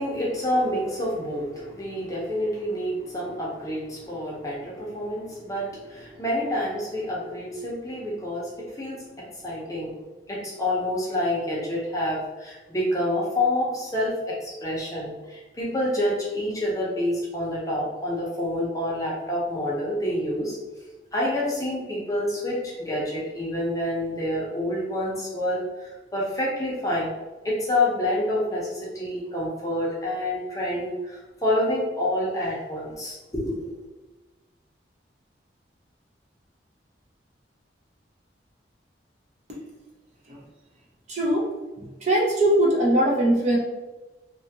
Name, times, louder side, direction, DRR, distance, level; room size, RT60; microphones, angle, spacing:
voice 1, 0.0-10.0 10.3-20.6 21.1-27.2 27.4-33.7, left 1 dB, 20° left, -5 dB, 0.7 m, -28 dB
voice 2, 41.1-41.4 41.8-43.6, right 1 dB, 40° right, -2 dB, 0.5 m, -21 dB
2.7 x 2.4 x 2.7 m, 1.2 s
head